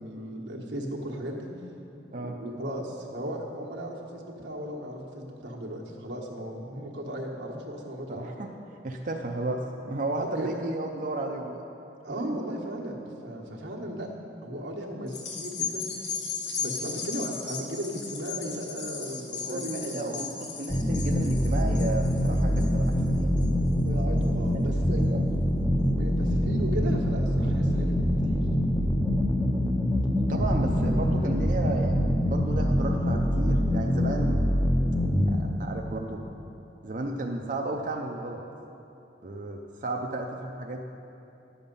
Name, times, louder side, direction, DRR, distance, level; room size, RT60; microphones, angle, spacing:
voice 1, 0.0-1.5 2.2-8.3 10.1-10.5 12.0-14.1 14.4-16.1 16.6-20.3 23.8-25.2 25.9-28.0 28.2-28.4, right 1 dB, 90° right, -1 dB, 1.3 m, -36 dB
voice 2, 8.1-8.5 8.8-9.6 9.9-11.6 19.4-23.4 24.5-24.7 25.1-25.2 30.3-34.4 35.3-36.2 36.8-38.4 39.2-40.8, right 2 dB, 50° right, 1 dB, 0.6 m, -33 dB
sound 1, 15.1-23.7 24.2-24.3, left 6 dB, 80° left, 1.3 m, -36 dB
sound 2, 20.7-35.3, equal, 5° left, 0.6 m, -25 dB
11.0 x 7.1 x 5.3 m, 2.8 s
head